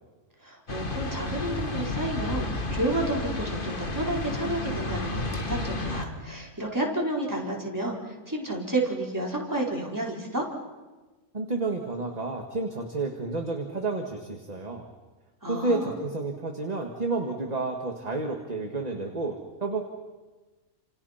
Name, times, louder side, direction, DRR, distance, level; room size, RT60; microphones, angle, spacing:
voice 1, 0.4-10.4 15.4-15.9, right 1 dB, 10° right, -2 dB, 4.3 m, -31 dB
sound 1, 0.7-6.0, left 2 dB, 35° left, 2.0 m, -31 dB
voice 2, 11.3-14.9 15.5-19.8, right 3 dB, 30° right, 3 dB, 1.9 m, -30 dB
29.5 x 28.0 x 5.8 m, 1.2 s
omnidirectional pair, 1.5 m